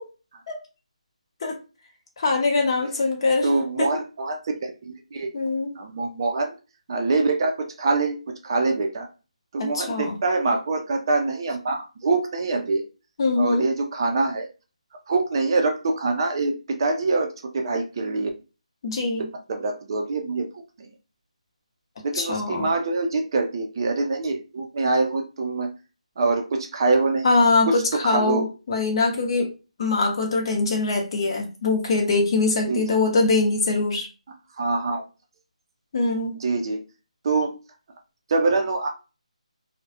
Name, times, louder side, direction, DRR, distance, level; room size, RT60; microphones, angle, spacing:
voice 1, 2.2-3.5 3.8-3.9 5.3-5.7 9.6-10.1 13.2-13.6 18.8-19.2 22.2-22.7 27.2-29.5 29.8-34.1 35.9-36.3, left 3 dB, 40° left, 1 dB, 0.7 m, -22 dB
voice 2, 3.4-5.3 5.8-6.6 6.9-9.1 9.5-12.8 13.4-14.5 15.1-18.3 19.5-20.9 22.0-25.7 26.2-27.3 27.7-28.5 32.7-32.8 34.6-35.0 36.4-36.8 37.2-37.5 38.3-38.9, right 3 dB, 40° right, 4 dB, 0.4 m, -24 dB
2.2 x 2.1 x 2.7 m, 0.31 s
figure-of-eight pair, 160°, 4 cm